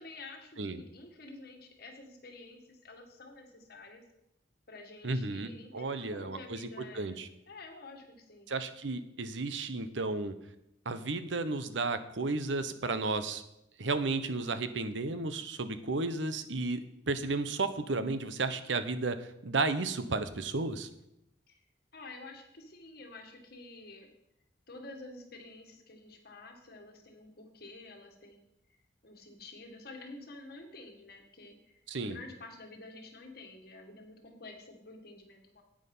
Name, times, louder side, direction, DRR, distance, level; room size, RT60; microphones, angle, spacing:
voice 1, 0.0-4.0 4.7-8.5 21.5-21.6 21.9-24.1 24.7-28.5 29.0-35.6, left 2 dB, 55° left, 3 dB, 1.9 m, -50 dB
voice 2, 5.0-6.7 6.9-7.3 8.5-10.4 10.8-13.4 13.8-19.2 19.4-20.9 31.9-32.2, right 3 dB, 85° right, 11 dB, 0.9 m, -33 dB
9.8 x 9.0 x 5.5 m, 0.83 s
head